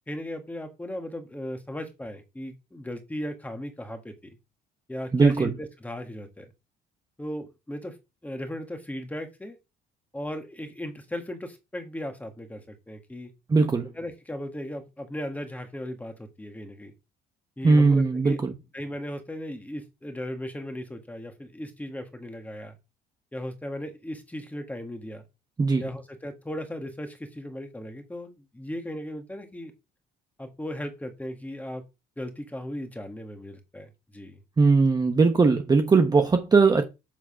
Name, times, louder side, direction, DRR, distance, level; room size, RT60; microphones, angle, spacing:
voice 1, 0.1-4.4 4.9-6.5 7.2-8.0 8.2-9.6 10.1-13.3 14.0-16.9 17.6-18.4 18.7-22.8 23.3-25.2 25.8-29.7 30.4-31.8 32.2-34.4, left 1 dB, 10° left, 1.7 m, -37 dB
voice 2, 5.1-5.5 13.5-13.9 17.6-18.5 25.6-25.8 34.6-36.8, right 4 dB, 25° right, 1.0 m, -19 dB
7.5 x 3.9 x 5.1 m
cardioid pair, 110°, 17 cm